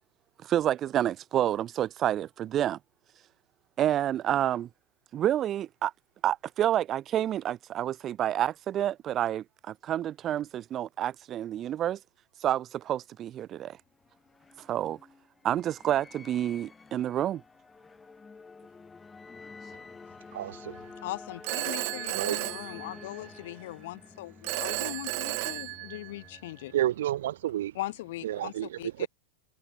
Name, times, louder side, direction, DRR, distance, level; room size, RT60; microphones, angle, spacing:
voice 1, 0.4-2.8 3.8-4.7 5.1-5.9 6.2-12.0 12.4-13.8 14.6-15.0 15.4-17.4, right 11 dB, 30° right, 0.6 m, -29 dB
sound 1, 13.9-27.5, left 4 dB, 10° left, 3.2 m, -50 dB
voice 2, 20.3-20.7 22.1-22.4 26.7-27.7 28.2-28.7 29.0-29.1, right 13 dB, 75° right, 0.4 m, -29 dB
voice 3, 21.0-26.7 27.7-29.1, left 17 dB, 65° left, 2.6 m, -40 dB
Telephone, 21.4-23.4 24.4-26.4, right 35 dB, 50° right, 1.1 m, -34 dB
hypercardioid pair, 135°, 0 cm